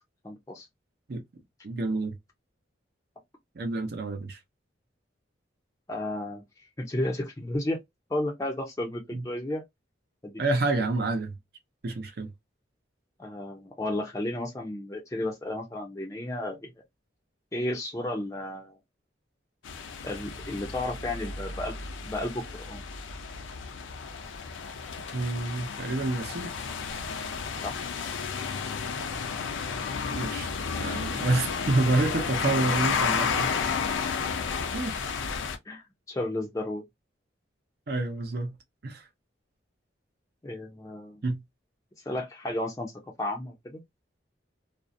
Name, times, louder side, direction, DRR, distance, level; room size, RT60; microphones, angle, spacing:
voice 1, 0.2-0.7 5.9-7.8 8.1-9.6 10.2-10.3 13.2-16.7 17.5-18.8 20.0-21.7 22.0-22.8 27.6-27.8 35.7-36.8 40.4-41.2 42.1-42.9 43.2-43.8, left 1 dB, 15° left, 0.4 m, -33 dB
voice 2, 1.6-2.2 3.6-4.4 9.1-9.2 10.4-11.3 11.8-12.3 25.1-26.5 30.1-33.5 34.7-35.0 37.9-38.6 38.8-39.1 41.2-41.4, right 2 dB, 55° right, 0.5 m, -28 dB
sound 1, 19.6-35.6, left 5 dB, 85° left, 0.5 m, -32 dB
2.5 x 2.0 x 2.5 m
head